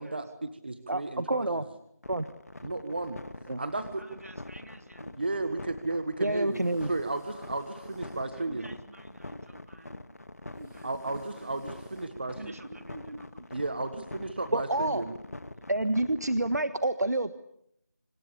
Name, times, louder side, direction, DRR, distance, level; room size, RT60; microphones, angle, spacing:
voice 1, 0.0-1.6 2.6-3.2 3.6-4.0 5.2-8.7 10.8-11.6 11.9-12.4 13.5-15.1, right 2 dB, 35° right, 10 dB, 1.5 m, -34 dB
voice 2, 0.9-1.6 2.1-2.3 3.5-3.6 6.2-6.9 14.5-15.0 15.7-17.3, right 2 dB, 75° right, 12 dB, 1.3 m, -28 dB
sound 1, 2.0-16.6, left 2 dB, 60° left, 1.8 m, -44 dB
sound 2, 3.3-13.5, right 2 dB, 5° right, 3.4 m, -62 dB
voice 3, 4.0-5.2 8.3-10.0 10.4-11.8 12.4-13.5, right 1 dB, 55° right, 7 dB, 3.3 m, -48 dB
29.5 x 26.0 x 6.9 m, 0.73 s
figure-of-eight pair, 175°, 9 cm